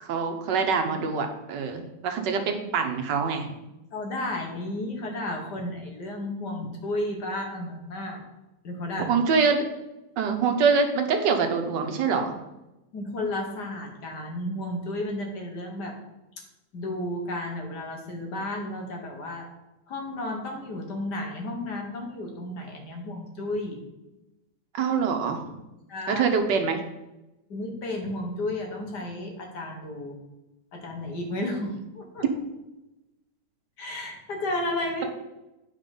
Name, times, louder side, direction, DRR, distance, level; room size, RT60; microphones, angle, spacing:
voice 1, 0.0-2.4 2.7-3.5 9.1-9.6 10.2-12.4 24.7-25.4 26.1-26.8, right 5 dB, 85° right, 5 dB, 1.6 m, -24 dB
voice 2, 3.9-8.2 8.6-9.1 12.9-16.0 16.7-19.5 19.9-23.8 25.9-26.2 27.5-30.2 30.7-32.2 33.8-35.0, left 1 dB, 70° left, 1 dB, 2.0 m, -32 dB
9.0 x 4.8 x 5.4 m, 0.99 s
omnidirectional pair, 1.8 m